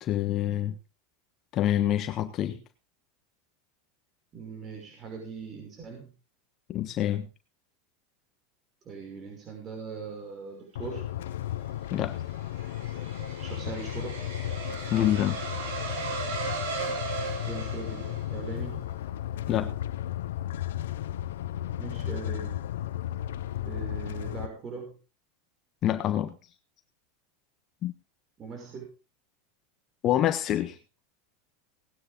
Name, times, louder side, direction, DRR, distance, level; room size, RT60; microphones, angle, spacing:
voice 1, 0.0-0.8 1.5-2.6 6.7-7.3 11.9-12.2 14.9-15.4 19.5-19.7 25.8-26.4 27.8-27.9 30.0-30.8, left 12 dB, 45° left, 9 dB, 1.3 m, -26 dB
voice 2, 4.3-6.1 8.8-11.1 13.4-14.2 17.3-18.9 21.8-22.6 23.6-25.0 28.4-28.8, right 5 dB, 35° right, 1 dB, 6.1 m, -40 dB
sound 1, 10.8-24.5, left 12 dB, 80° left, 0.8 m, -34 dB
sound 2, 11.5-18.6, right 4 dB, 65° right, 7.7 m, -37 dB
19.0 x 9.8 x 3.7 m, 0.31 s
hypercardioid pair, 105°, 0 cm